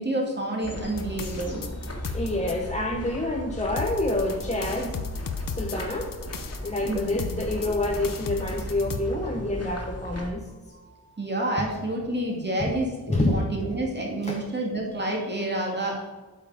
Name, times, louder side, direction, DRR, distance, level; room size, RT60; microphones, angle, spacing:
voice 1, 0.0-1.6 6.9-7.2 11.2-12.9 13.3-16.0, right 1 dB, 25° right, -1 dB, 2.3 m, -28 dB
sound 1, 0.6-10.3, left 1 dB, 40° left, 2.0 m, -37 dB
sound 2, 1.0-2.5 3.8-9.0, left 5 dB, 60° left, 0.8 m, -35 dB
voice 2, 2.1-5.1 5.5-6.2 6.6-10.8 13.1-13.5 14.2-14.4, left 1 dB, 20° left, 0 dB, 0.8 m, -28 dB
8.3 x 5.6 x 5.0 m, 1.3 s
wide cardioid pair, 95°, 38 cm